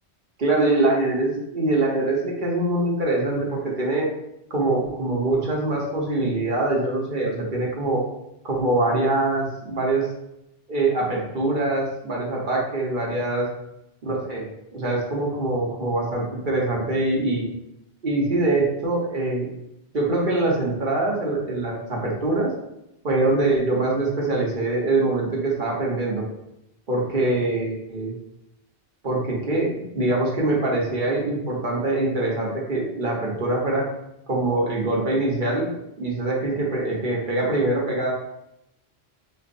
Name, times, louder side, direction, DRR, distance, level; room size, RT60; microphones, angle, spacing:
voice 1, 0.4-4.1 4.5-8.0 8.4-10.1 10.7-13.5 14.1-14.4 14.7-17.5 18.0-19.5 19.9-22.5 23.0-26.2 26.9-28.1 29.0-33.8 34.3-35.7 36.0-38.1, right 2 dB, 50° right, -3 dB, 1.1 m, -23 dB
5.3 x 2.4 x 2.5 m, 0.84 s
omnidirectional pair, 1.1 m